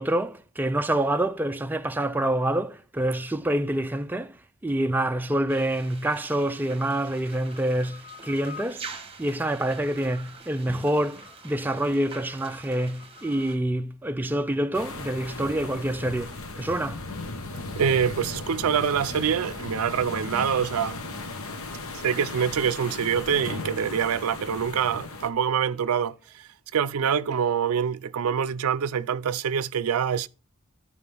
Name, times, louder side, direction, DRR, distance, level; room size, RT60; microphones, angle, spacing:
voice 1, 0.0-4.4 4.6-17.0, right 1 dB, 10° right, 0.3 m, -27 dB
sound 1, 5.5-13.6, right 3 dB, 25° right, 1.0 m, -44 dB
sound 2, 14.7-25.3, left 3 dB, 75° left, 1.1 m, -36 dB
voice 2, 17.8-21.0 21.9-30.3, right 7 dB, 85° right, 0.4 m, -25 dB
12.0 x 4.8 x 3.4 m
head